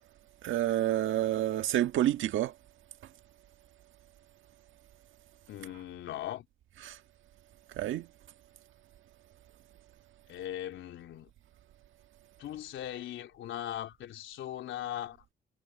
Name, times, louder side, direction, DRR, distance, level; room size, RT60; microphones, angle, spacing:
voice 1, 0.4-2.5 6.8-7.0 7.7-8.1, right 13 dB, 80° right, 1.6 m, -28 dB
voice 2, 5.5-6.5 10.3-11.3 12.4-15.2, left 12 dB, 80° left, 3.4 m, -39 dB
cardioid pair, 90°, 20 cm